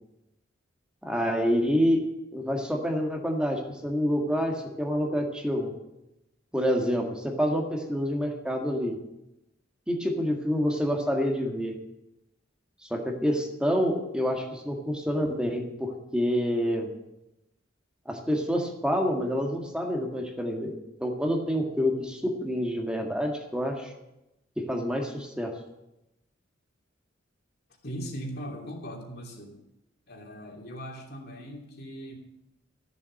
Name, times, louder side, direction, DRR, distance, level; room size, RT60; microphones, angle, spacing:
voice 1, 1.0-2.0 2.3-5.7 6.5-9.0 9.9-11.8 12.9-16.9 18.0-23.9 24.6-25.5, equal, 5° right, 2 dB, 1.7 m, -27 dB
voice 2, 27.8-29.6 30.1-32.2, equal, 55° left, 0 dB, 2.9 m, -39 dB
14.5 x 7.1 x 7.6 m, 0.92 s
head